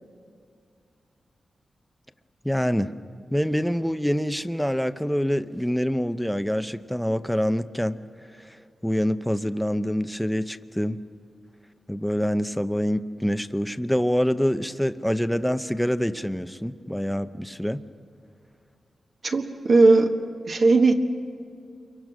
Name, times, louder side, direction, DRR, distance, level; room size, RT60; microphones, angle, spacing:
voice 1, 2.4-2.9 3.3-8.0 8.3-8.6 8.8-11.0 11.9-17.8, equal, ahead, 11 dB, 0.7 m, -26 dB
voice 2, 19.2-20.1 20.5-20.9, right 3 dB, 55° right, 3 dB, 1.5 m, -17 dB
28.0 x 23.5 x 6.2 m, 2.3 s
wide cardioid pair, 105°, 0 cm